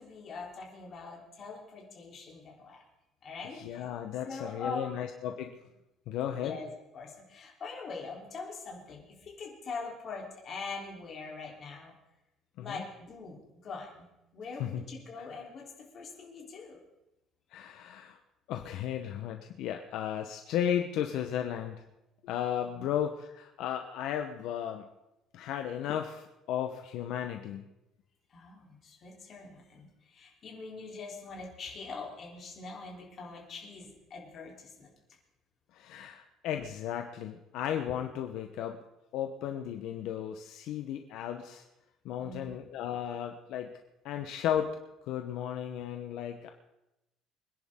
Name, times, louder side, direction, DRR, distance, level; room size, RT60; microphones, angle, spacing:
voice 1, 0.0-2.8 3.2-3.9 4.2-5.0 6.3-11.9 12.6-15.6 15.9-16.8 22.7-22.9 28.3-34.9 42.2-42.6, left 4 dB, 35° left, -2 dB, 3.7 m, -43 dB
voice 2, 3.5-5.5 6.1-6.6 12.6-12.8 14.6-14.8 17.5-18.2 18.5-21.8 22.2-24.9 25.3-27.6 35.7-38.8 39.1-41.6 42.0-43.7 44.0-44.8 45.0-46.5, left 10 dB, 70° left, 5 dB, 1.0 m, -34 dB
25.0 x 10.5 x 3.8 m, 0.93 s
cardioid pair, 165°, 0 cm